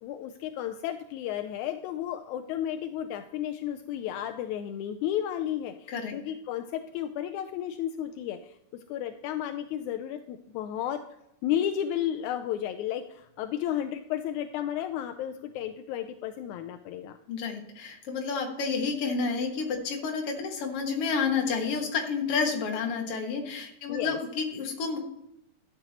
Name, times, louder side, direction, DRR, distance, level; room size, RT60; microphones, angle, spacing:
voice 1, 0.0-11.0 11.4-17.2 23.9-24.2, left 11 dB, 85° left, 7 dB, 1.7 m, -33 dB
voice 2, 17.3-25.0, left 5 dB, 50° left, 2 dB, 2.1 m, -30 dB
12.5 x 8.1 x 2.9 m, 0.81 s
omnidirectional pair, 3.9 m